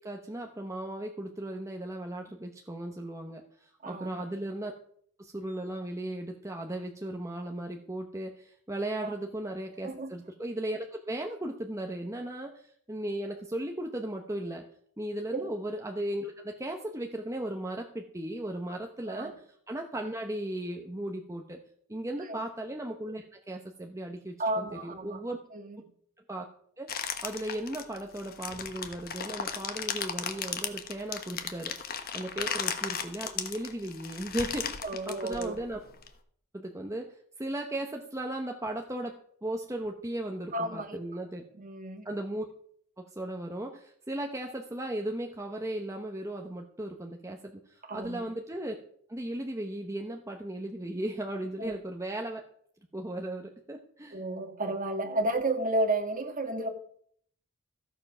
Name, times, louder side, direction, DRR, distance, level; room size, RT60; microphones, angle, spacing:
voice 1, 0.0-4.7 5.2-14.6 15.0-19.3 19.7-21.6 21.9-25.4 26.3-26.5 26.8-31.7 32.1-35.8 36.5-41.4 42.0-42.5 43.0-48.7 49.1-52.4 52.9-54.2, right 1 dB, 15° right, 2 dB, 0.9 m, -36 dB
voice 2, 3.8-4.2 9.0-9.1 9.8-10.1 15.3-15.5 19.1-19.3 22.2-22.5 24.4-25.2 25.5-25.8 32.4-32.6 34.8-35.6 40.5-41.0 41.5-42.0 47.9-48.2 51.6-51.7 54.1-56.7, right 2 dB, 35° right, 6 dB, 1.7 m, -32 dB
sound 1, 26.9-36.1, left 7 dB, 45° left, 1.2 m, -36 dB
14.5 x 7.3 x 6.0 m, 0.63 s
head